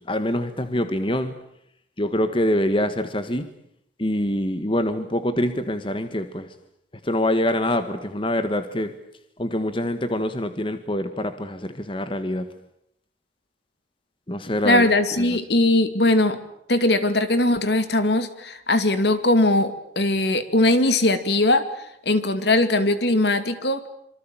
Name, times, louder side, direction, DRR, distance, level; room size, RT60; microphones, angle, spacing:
voice 1, 0.0-1.3 2.0-3.5 4.0-6.5 7.0-8.9 9.4-12.5 14.3-15.4, left 1 dB, 30° left, 10 dB, 1.7 m, -25 dB
voice 2, 14.6-16.4 16.7-21.7 22.1-23.8, left 2 dB, 65° left, 10 dB, 2.5 m, -20 dB
26.5 x 25.0 x 9.0 m, 0.74 s
head